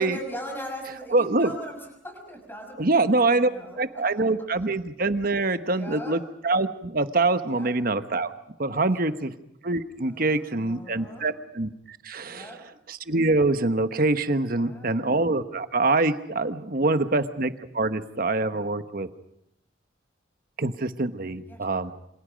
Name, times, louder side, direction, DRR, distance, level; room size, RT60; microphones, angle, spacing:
voice 1, 0.0-4.0 4.4-4.5 5.6-6.2 7.5-7.7 8.7-9.2 10.0-11.3 12.3-12.6 14.4-14.9 16.7-17.2 21.4-21.9, equal, 10° left, 3 dB, 6.5 m, -40 dB
voice 2, 1.1-1.5 2.8-3.5 3.8-8.3 8.6-9.3 9.6-12.5 12.9-19.1 20.6-21.9, right 2 dB, 50° right, 10 dB, 1.1 m, -25 dB
27.5 x 27.0 x 5.2 m, 0.77 s
head